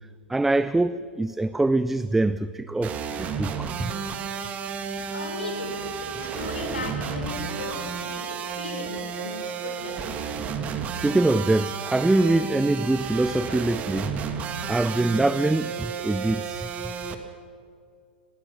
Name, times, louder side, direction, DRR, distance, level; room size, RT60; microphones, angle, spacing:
voice 1, 0.3-3.9 10.9-14.2 14.7-16.7, right 2 dB, 5° right, 0.5 m, -24 dB
sound 1, 2.8-17.1, right 6 dB, 25° right, 2.0 m, -32 dB
voice 2, 5.1-9.9, left 3 dB, 70° left, 5.4 m, -36 dB
29.5 x 20.5 x 6.1 m
figure-of-eight pair, 100°, 6 cm